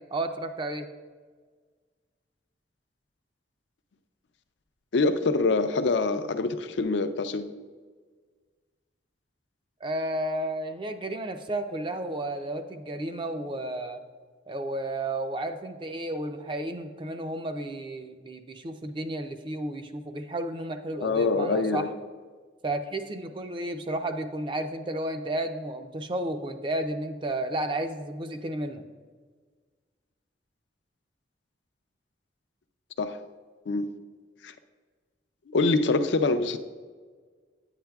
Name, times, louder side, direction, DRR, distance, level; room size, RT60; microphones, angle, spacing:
voice 1, 0.1-0.9 9.8-14.0 14.5-21.9 22.6-28.8, right 1 dB, 30° right, 7 dB, 0.4 m, -32 dB
voice 2, 4.9-7.5 21.0-21.9 33.0-33.2 33.7-33.9 34.4-34.5 35.5-36.6, left 3 dB, 80° left, 9 dB, 0.5 m, -25 dB
9.4 x 9.0 x 2.3 m, 1.5 s
head